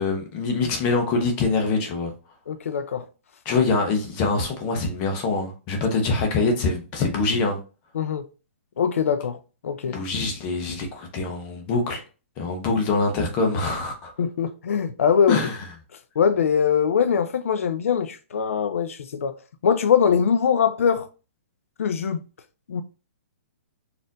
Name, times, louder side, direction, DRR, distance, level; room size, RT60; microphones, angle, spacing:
voice 1, 0.0-2.1 3.5-7.6 9.9-12.0 12.4-14.1 15.3-15.6, left 3 dB, 15° left, 0.5 m, -24 dB
voice 2, 2.5-3.0 7.9-8.2 8.8-9.4 9.6-10.0 14.2-15.4 16.2-19.3 19.6-21.1 21.8-22.2 22.7-22.8, left 7 dB, 75° left, 0.4 m, -22 dB
4.2 x 2.5 x 3.8 m
hypercardioid pair, 175°, 7 cm